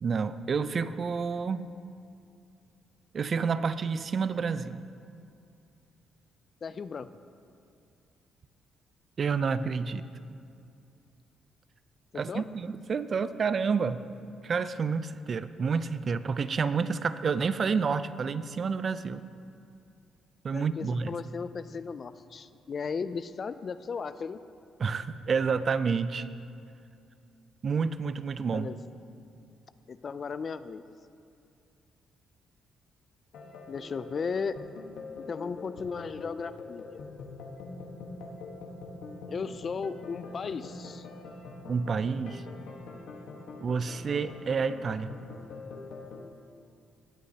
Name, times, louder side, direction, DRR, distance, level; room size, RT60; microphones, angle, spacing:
voice 1, 0.0-1.7 3.1-4.8 9.2-10.1 12.1-14.0 14.4-19.2 20.4-21.1 24.8-26.3 27.6-28.7 41.7-42.4 43.6-45.1, right 5 dB, 45° right, 13 dB, 0.4 m, -29 dB
voice 2, 6.6-7.1 12.3-12.5 20.5-24.4 28.5-28.8 29.9-30.8 33.7-34.6 35.3-37.0 39.3-41.1, left 5 dB, 45° left, 13 dB, 0.4 m, -36 dB
sound 1, 33.3-46.3, left 3 dB, 75° left, 1.3 m, -44 dB
17.0 x 8.3 x 2.8 m, 2.5 s
cardioid pair, 90°, 0 cm